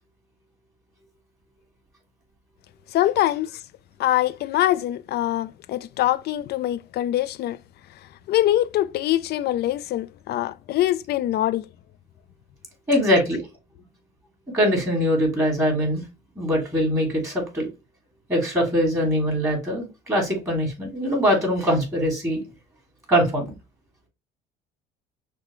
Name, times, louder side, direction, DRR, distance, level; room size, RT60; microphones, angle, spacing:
voice 1, 2.9-3.6 4.0-7.6 8.3-11.7, left 13 dB, 55° left, 0.4 m, -23 dB
voice 2, 12.9-13.4 14.5-16.0 16.4-17.7 18.3-22.4 23.1-23.5, equal, 15° right, 2.7 m, -22 dB
6.0 x 2.2 x 3.0 m
cardioid pair, 105°, 19 cm